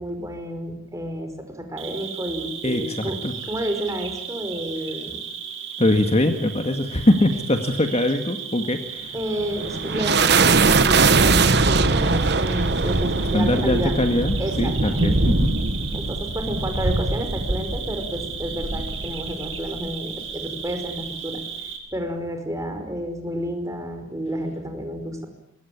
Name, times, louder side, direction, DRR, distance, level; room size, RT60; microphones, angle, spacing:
voice 1, 0.0-5.2 9.1-13.9 14.4-15.0 15.9-21.4 21.9-25.3, equal, 15° right, 5 dB, 5.3 m, -30 dB
Cricket, 1.8-21.8, right 7 dB, 75° right, 6.8 m, -35 dB
voice 2, 2.6-3.3 5.8-9.1 13.3-15.5, left 1 dB, 30° left, 6 dB, 2.0 m, -22 dB
sound 1, 9.2-19.9, right 3 dB, 55° right, 1.3 m, -21 dB
25.0 x 22.0 x 8.8 m, 0.76 s
head